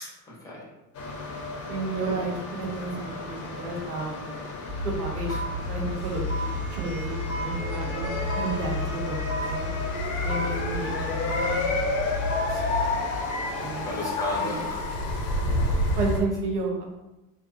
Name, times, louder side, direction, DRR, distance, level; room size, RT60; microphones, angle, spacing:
voice 1, 0.3-0.7 2.0-2.2 5.3-5.4 12.5-13.0 13.6-14.8, left 2 dB, 10° left, -3 dB, 0.8 m, -35 dB
sound 1, 0.9-16.2, left 2 dB, 45° left, 0.6 m, -31 dB
voice 2, 1.7-3.1 3.6-4.5 4.8-5.3 5.7-9.6 10.2-11.7 13.6-14.0 14.3-14.6 16.0-17.0, right 2 dB, 85° right, 0 dB, 0.8 m, -32 dB
sound 2, 4.7-12.9, left 2 dB, 35° right, 0.7 m, -32 dB
sound 3, 5.3-5.5 6.3-6.5 7.3-7.5 8.3-8.5 9.3-9.5 10.3-10.5 11.3-11.5 12.3-12.5 13.3-13.5, right 3 dB, 10° right, 0.3 m, -32 dB
2.5 x 2.3 x 2.4 m, 1.0 s
hypercardioid pair, 100°, 45 cm